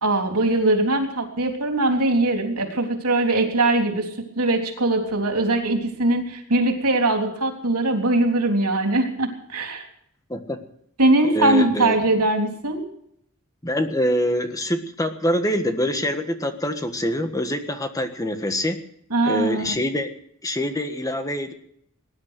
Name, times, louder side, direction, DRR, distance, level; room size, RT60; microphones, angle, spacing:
voice 1, 0.0-9.9 11.0-12.8 19.1-19.8, right 2 dB, 80° right, 3 dB, 3.5 m, -21 dB
voice 2, 11.3-12.0 13.6-18.8 19.2-20.1 20.4-21.5, equal, 15° left, 7 dB, 1.5 m, -25 dB
19.5 x 11.0 x 6.6 m, 0.69 s
head